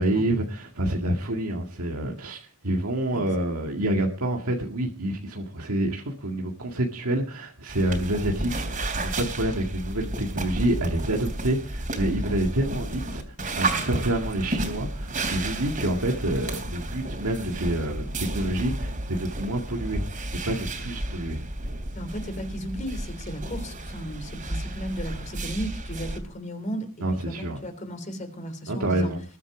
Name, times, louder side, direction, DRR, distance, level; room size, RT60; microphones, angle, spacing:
voice 1, 0.0-20.0 20.5-21.5 27.0-27.6 28.7-29.2, right 1 dB, 85° right, 1 dB, 2.0 m, -28 dB
sound 1, 7.7-26.2, right 2 dB, 40° right, 3.2 m, -32 dB
voice 2, 21.9-29.1, equal, 35° left, 7 dB, 3.4 m, -35 dB
21.0 x 8.3 x 4.9 m, 0.38 s
head